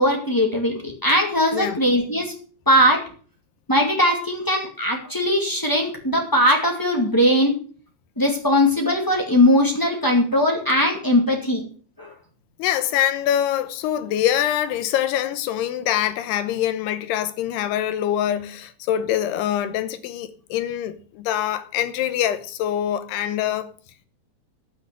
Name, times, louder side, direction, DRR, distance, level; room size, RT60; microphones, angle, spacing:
voice 1, 0.0-2.3 2.6-3.0 3.7-7.5 8.2-11.6 12.0-12.1, equal, 25° left, 0.4 m, -19 dB
voice 2, 12.6-23.7, left 11 dB, 80° left, 3.0 m, -24 dB
12.5 x 6.4 x 7.7 m
omnidirectional pair, 4.8 m